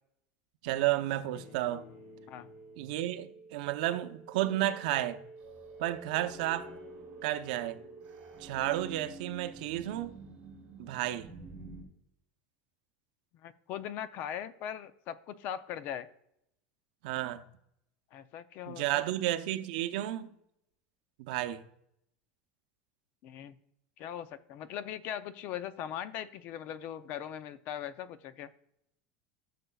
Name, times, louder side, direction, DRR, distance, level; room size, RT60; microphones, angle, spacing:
voice 1, 0.6-1.9 2.8-5.2 5.8-6.7 7.2-7.8 8.4-10.1 10.8-11.3 17.0-17.4 18.7-20.3 21.2-21.6, right 14 dB, 70° right, 0.7 m, -32 dB
sound 1, 1.3-9.2, right 3 dB, 65° left, 3.5 m, -51 dB
sound 2, 5.4-11.8, right 2 dB, 30° right, 3.1 m, -49 dB
voice 2, 13.4-16.1 18.1-19.0 23.2-23.6 24.0-28.5, left 10 dB, 45° left, 0.5 m, -40 dB
15.0 x 6.6 x 2.3 m
supercardioid pair, 165°, 5 cm